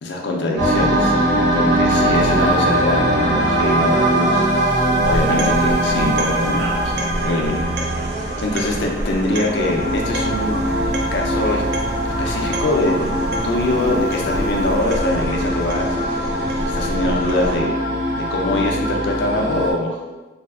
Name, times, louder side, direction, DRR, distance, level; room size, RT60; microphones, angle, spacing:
voice 1, 0.0-6.9 7.2-7.6 8.4-10.5 11.1-11.6 12.0-13.1 13.4-16.3 16.6-17.7 18.2-20.0, left 2 dB, 60° left, 0 dB, 0.4 m, -23 dB
sound 1, 0.6-19.7, right 1 dB, 70° right, 0.7 m, -21 dB
sound 2, 5.0-17.6, right 1 dB, 55° right, 0.3 m, -28 dB
2.6 x 2.3 x 2.4 m, 1.1 s
head